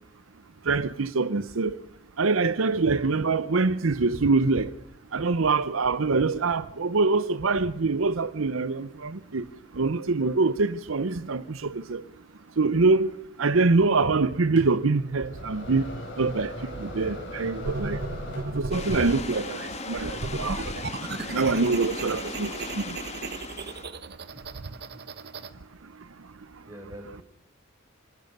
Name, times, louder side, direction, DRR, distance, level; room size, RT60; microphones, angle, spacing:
voice 1, 0.7-1.8 2.2-4.7 5.1-9.4 9.8-12.0 12.6-13.1 13.4-15.8 16.2-16.5 16.8-18.0 18.6-20.6 21.3-23.0, right 3 dB, 70° right, 0.8 m, -24 dB
sound 1, 14.6-19.0, equal, 60° left, 7.2 m, -39 dB
sound 2, 17.6-19.2 19.9-25.5, right 3 dB, 50° right, 1.3 m, -35 dB
sound 3, 18.7-23.9, left 3 dB, 30° left, 2.3 m, -37 dB
voice 2, 26.7-27.2, equal, 15° right, 5.6 m, -45 dB
26.0 x 18.5 x 6.7 m
head